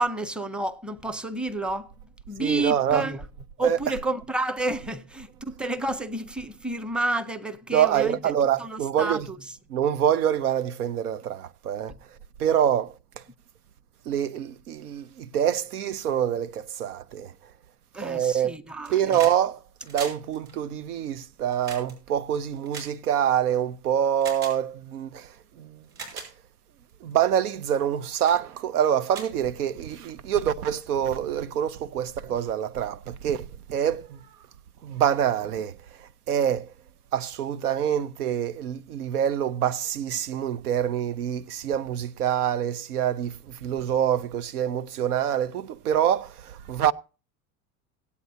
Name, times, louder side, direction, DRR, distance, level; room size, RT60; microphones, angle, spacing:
voice 1, 0.0-1.9 2.3-3.2 3.6-8.2 8.6-9.4 17.9-19.2, right 2 dB, ahead, 0.6 m, -30 dB
voice 2, 2.4-3.0 3.6-3.8 7.7-9.3 9.7-11.9 12.4-13.2 14.1-17.3 18.0-18.6 18.9-25.8 26.1-26.3 27.0-34.2 34.8-36.7 37.1-46.9, right 9 dB, 90° right, 0.6 m, -26 dB
sound 1, 18.7-19.4 19.7-23.6 24.2-24.6 25.3-25.4 25.8-26.3 26.9-27.1 27.7-27.9 28.2-28.4 28.8-28.9 29.1-30.0 31.2-31.3, right 4 dB, 60° right, 6.1 m, -40 dB
18.5 x 8.2 x 2.8 m
hypercardioid pair, 85°, 44 cm